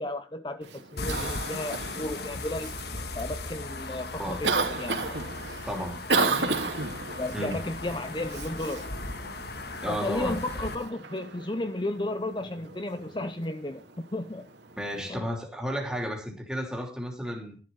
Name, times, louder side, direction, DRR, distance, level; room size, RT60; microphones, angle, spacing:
voice 1, 0.0-2.7 3.2-5.3 6.2-6.8 7.1-8.9 9.9-14.5 15.1-15.3, left 1 dB, 25° left, 0.7 m, -34 dB
Cough, 0.6-15.1, right 3 dB, 85° right, 2.6 m, -34 dB
sound 1, 1.0-10.7, left 3 dB, 65° left, 1.7 m, -37 dB
voice 2, 5.7-6.0 7.3-7.6 9.8-10.4 14.8-17.6, equal, 5° right, 3.2 m, -33 dB
13.5 x 11.5 x 4.1 m
head